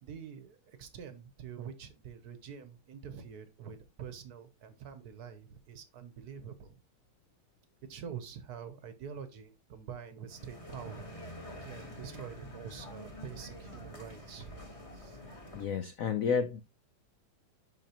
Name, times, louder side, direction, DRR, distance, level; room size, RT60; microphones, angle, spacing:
voice 1, 0.0-6.8 7.9-11.1 11.6-14.6 14.9-15.2, right 7 dB, 60° right, 1.1 m, -46 dB
sound 1, 10.3-15.6, left 1 dB, 20° left, 1.3 m, -47 dB
voice 2, 15.5-16.6, left 6 dB, 85° left, 0.7 m, -31 dB
11.0 x 3.9 x 2.9 m
omnidirectional pair, 2.2 m